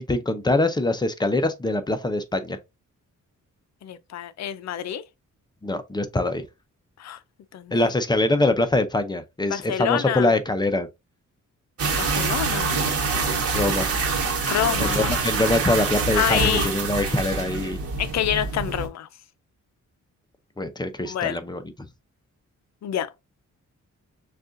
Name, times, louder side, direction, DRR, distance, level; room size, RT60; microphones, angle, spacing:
voice 1, 0.0-2.6 5.6-6.5 7.7-10.9 13.5-14.0 14.8-17.8 20.6-21.9, left 2 dB, 15° left, 0.5 m, -24 dB
voice 2, 3.8-5.0 7.0-7.2 7.5-7.9 9.5-10.3 12.0-12.8 14.4-15.2 16.2-16.7 18.0-19.1 21.1-21.4 22.8-23.1, left 10 dB, 60° left, 0.5 m, -27 dB
sound 1, 11.8-18.9, right 4 dB, 50° right, 1.1 m, -25 dB
6.4 x 2.4 x 2.5 m
wide cardioid pair, 145°, 30 cm